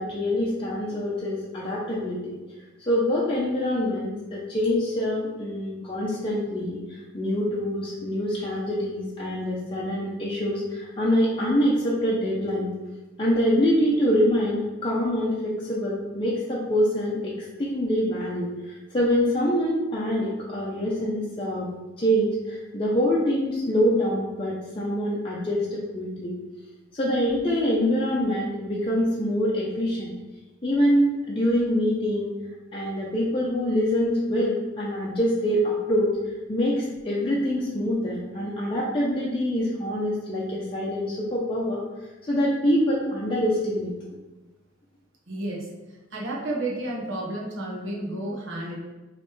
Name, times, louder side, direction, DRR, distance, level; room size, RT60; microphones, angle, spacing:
voice 1, 0.0-2.4 2.9-12.7 13.2-26.3 26.9-30.1 30.6-32.3 32.7-36.2 36.5-41.8 42.3-43.9, equal, 25° left, -6 dB, 0.6 m, -25 dB
voice 2, 45.3-45.7 46.1-48.8, right 1 dB, 70° right, -3 dB, 1.1 m, -31 dB
5.2 x 3.2 x 3.1 m, 1.1 s
head